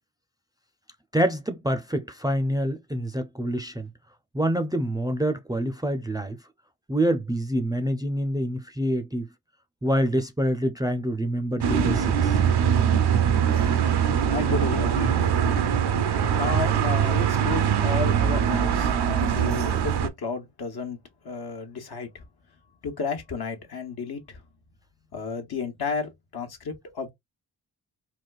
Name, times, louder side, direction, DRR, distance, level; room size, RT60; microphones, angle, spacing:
voice 1, 1.1-3.9 4.3-6.4 6.9-9.3 9.8-12.3, right 1 dB, 10° right, 0.5 m, -26 dB
sound 1, 11.6-20.1, right 8 dB, 70° right, 0.7 m, -22 dB
voice 2, 14.3-15.8 16.3-21.0 21.2-22.2 22.8-24.4 25.1-27.1, left 5 dB, 65° left, 1.0 m, -33 dB
4.0 x 2.2 x 2.3 m
cardioid pair, 45°, 41 cm